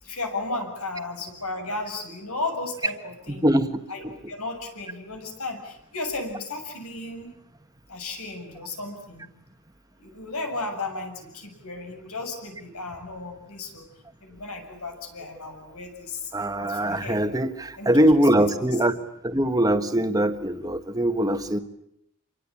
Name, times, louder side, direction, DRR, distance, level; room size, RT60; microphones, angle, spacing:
voice 1, 0.0-3.5 3.9-7.3 7.9-9.3 10.0-13.9 14.2-16.3 16.6-17.2 17.8-18.2 18.6-18.7, left 3 dB, 90° left, 4 dB, 7.2 m, -34 dB
voice 2, 3.3-3.8 4.0-4.1 16.3-19.0 19.2-21.6, right 1 dB, 15° right, 8 dB, 1.5 m, -22 dB
27.5 x 24.0 x 8.6 m, 0.75 s
head